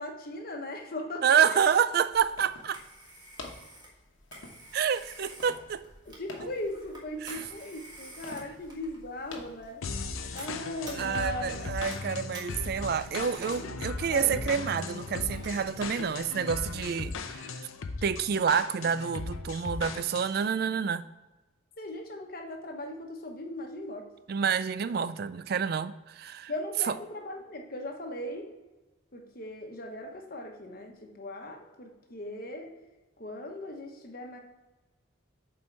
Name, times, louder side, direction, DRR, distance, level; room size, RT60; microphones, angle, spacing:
voice 1, 0.0-1.6 6.0-9.9 10.3-11.7 13.2-13.7 14.1-14.6 21.8-24.1 26.5-28.5 29.1-32.7 33.2-34.4, left 1 dB, 45° left, 1.0 m, -39 dB
voice 2, 1.2-2.8 4.7-5.9 7.2-7.4 11.0-17.5 18.0-21.0 24.3-26.5 26.9-27.0, right 7 dB, 50° right, 0.3 m, -28 dB
sound 1, 1.6-10.5, left 3 dB, 70° left, 1.1 m, -50 dB
Telephone, 2.1-16.4, right 1 dB, 20° right, 1.4 m, -51 dB
sound 2, 9.8-20.5, left 4 dB, 90° left, 0.6 m, -37 dB
7.5 x 4.5 x 4.5 m
head